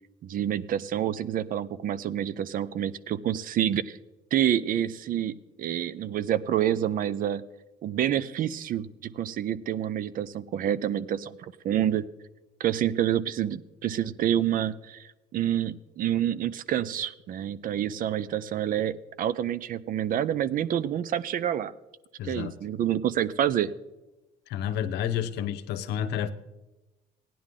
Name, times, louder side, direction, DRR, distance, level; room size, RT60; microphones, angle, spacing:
voice 1, 0.2-4.0 4.3-7.4 7.8-11.4 11.6-12.0 12.6-21.7 22.2-23.7, right 10 dB, 55° right, 17 dB, 0.6 m, -28 dB
voice 2, 22.2-22.5 24.5-26.3, left 9 dB, 85° left, 12 dB, 0.8 m, -30 dB
16.5 x 10.0 x 3.7 m, 1.0 s
cardioid pair, 110°, 17 cm